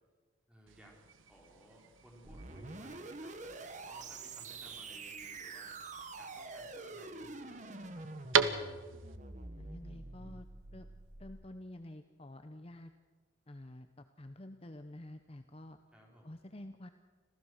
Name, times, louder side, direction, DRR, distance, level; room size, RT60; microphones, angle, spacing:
voice 1, 0.5-5.7 6.2-8.4 15.9-16.4, right 1 dB, 5° right, -1 dB, 4.2 m, -59 dB
sound 1, 0.7-9.2, right 6 dB, 85° right, 1.1 m, -39 dB
sound 2, 2.2-11.4, right 3 dB, 40° right, 1.4 m, -46 dB
voice 2, 9.6-10.5 10.7-10.9 11.2-12.9 13.5-15.8 16.2-16.9, left 1 dB, 30° left, 8 dB, 0.8 m, -49 dB
26.5 x 16.0 x 6.5 m, 1.4 s
head